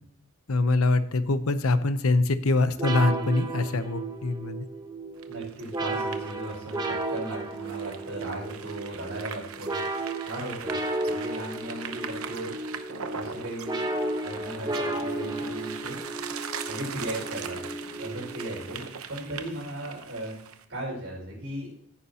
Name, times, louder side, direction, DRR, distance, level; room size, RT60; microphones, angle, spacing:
voice 1, 0.5-4.7, left 2 dB, 80° left, 12 dB, 0.8 m, -24 dB
Em Synth chord progression, 2.8-19.0, right 2 dB, 20° right, 1.1 m, -34 dB
sound 1, 5.2-20.6, right 7 dB, 80° right, 0.9 m, -41 dB
voice 2, 5.3-9.8 10.3-10.8 11.0-12.6 13.1-13.8 14.2-16.0 16.7-17.6 18.0-18.8 19.1-20.3 20.7-21.7, right 1 dB, 60° right, -8 dB, 5.2 m, -37 dB
15.0 x 9.7 x 2.9 m, 0.70 s
head